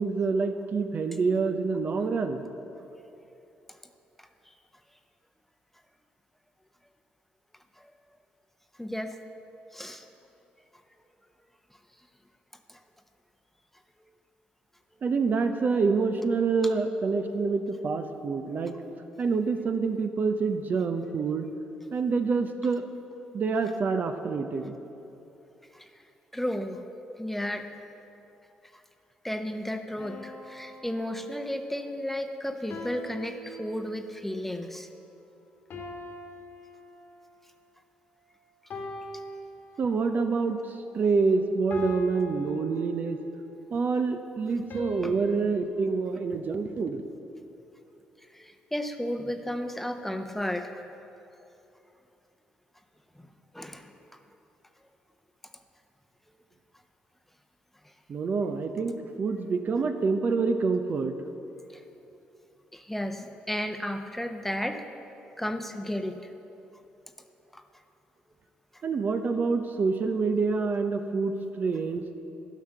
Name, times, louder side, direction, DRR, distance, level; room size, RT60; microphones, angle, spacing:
voice 1, 0.0-2.4 15.0-18.8 19.2-21.5 21.9-22.9 23.3-24.8 39.8-43.2 43.7-47.0 58.1-61.2 68.8-72.1, right 4 dB, 50° right, 7 dB, 0.6 m, -27 dB
voice 2, 8.8-9.2 9.7-10.1 12.7-12.8 25.7-25.9 26.3-26.8 27.2-27.7 28.7-28.8 29.2-34.9 44.1-44.2 44.5-44.6 45.0-45.1 48.3-50.8 53.2-53.3 53.5-53.9 61.7-61.8 62.7-64.8 65.4-66.3 67.5-67.6, left 1 dB, 5° left, 6 dB, 0.9 m, -33 dB
sound 1, 30.0-31.6 32.7-34.2 35.7-37.4 38.7-40.2 41.7-43.4 44.7-45.7, left 2 dB, 60° left, 1.4 m, -42 dB
11.5 x 5.9 x 6.5 m, 2.9 s
hypercardioid pair, 50°, 4 cm